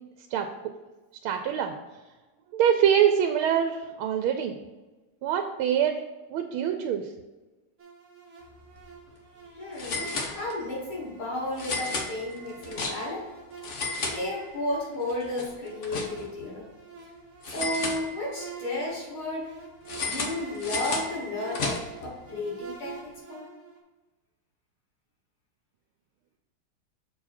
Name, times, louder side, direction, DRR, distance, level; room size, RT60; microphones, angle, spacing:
voice 1, 1.2-1.7 2.5-4.5 5.2-6.0 6.3-7.1, right 9 dB, 90° right, 6 dB, 1.4 m, -24 dB
sound 1, 7.8-23.8, right 5 dB, 40° right, 1.4 m, -47 dB
sound 2, 8.6-8.8 9.1-9.2 9.8-10.8 11.6-13.3 13.6-14.8 15.1-16.5 17.4-18.5 19.9-22.1, left 3 dB, 45° left, 1.0 m, -33 dB
voice 2, 9.6-13.3 13.9-16.6 17.5-19.5 20.0-23.5, left 1 dB, 80° left, -5 dB, 3.2 m, -33 dB
7.0 x 4.8 x 4.3 m, 1.2 s
omnidirectional pair, 2.3 m